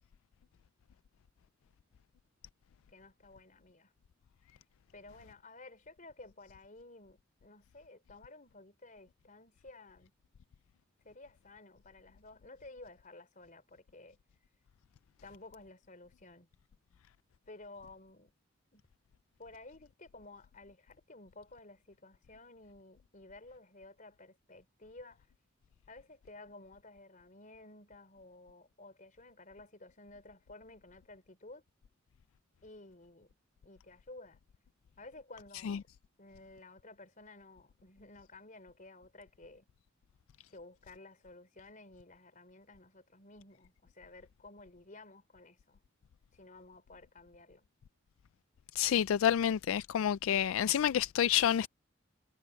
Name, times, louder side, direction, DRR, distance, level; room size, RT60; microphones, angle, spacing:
voice 1, 2.9-3.9 4.9-10.1 11.0-14.2 15.2-16.5 17.5-18.3 18.7-18.8 19.4-25.3 25.9-31.6 32.6-33.3 33.6-34.4 35.0-35.9 36.2-39.7 40.5-45.8 46.3-47.7, left 2 dB, 40° left, 3.8 m, -54 dB
voice 2, 48.8-51.7, left 9 dB, 80° left, 0.3 m, -28 dB
head